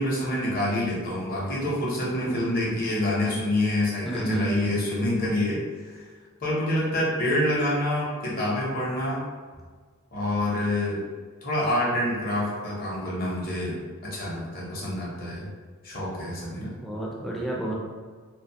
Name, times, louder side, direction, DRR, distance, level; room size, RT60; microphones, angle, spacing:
voice 1, 0.0-5.6 5.8-6.0 6.4-9.2 10.1-11.0 11.4-15.5 15.8-16.7, left 1 dB, 40° left, -5 dB, 0.7 m, -27 dB
voice 2, 4.0-4.8 16.6-17.7, right 2 dB, ahead, -4 dB, 0.4 m, -31 dB
2.5 x 2.2 x 2.7 m, 1.5 s
head